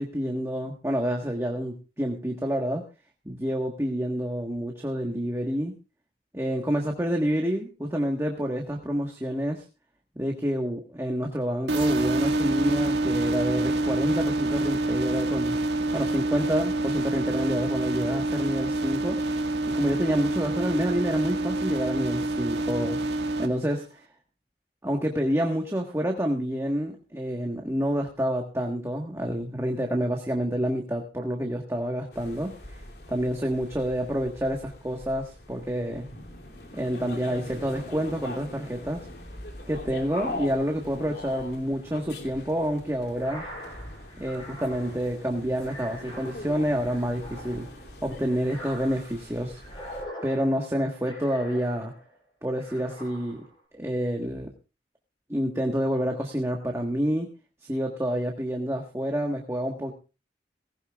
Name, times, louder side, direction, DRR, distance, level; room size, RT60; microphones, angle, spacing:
voice 1, 0.0-2.9 3.2-5.8 6.3-9.6 10.1-15.5 15.9-19.2 19.7-23.0 23.4-24.0 24.8-32.8 33.1-36.1 36.7-39.1 39.7-43.5 44.2-47.7 48.0-49.6 50.2-51.9 52.4-53.4 53.7-54.5 55.3-57.3 57.6-59.9, equal, 15° right, 1 dB, 1.4 m, -28 dB
sound 1, 11.7-23.5, right 2 dB, 80° right, 1.8 m, -27 dB
sound 2, 32.1-50.0, left 1 dB, 70° left, 3.0 m, -42 dB
sound 3, 43.1-52.2 52.6-53.6, equal, 30° left, 5.8 m, -44 dB
18.5 x 17.0 x 2.4 m, 0.32 s
head